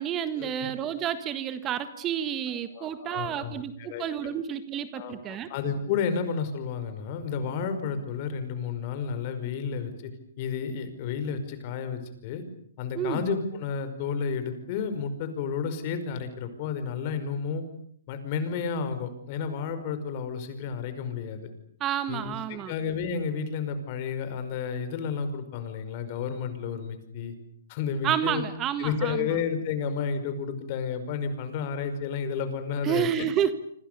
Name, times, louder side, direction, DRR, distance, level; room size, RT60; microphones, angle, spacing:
voice 1, 0.0-5.5 12.9-13.2 21.8-22.7 28.0-29.3 32.8-33.5, right 9 dB, 25° right, 12 dB, 1.7 m, -30 dB
voice 2, 2.7-4.0 4.9-10.1 10.4-12.4 12.8-17.6 18.1-21.5 22.1-22.3 22.7-27.3 27.7-28.4 28.8-33.1, left 6 dB, 40° left, 10 dB, 5.4 m, -31 dB
27.5 x 26.0 x 6.9 m, 0.64 s
hypercardioid pair, 140°, 0 cm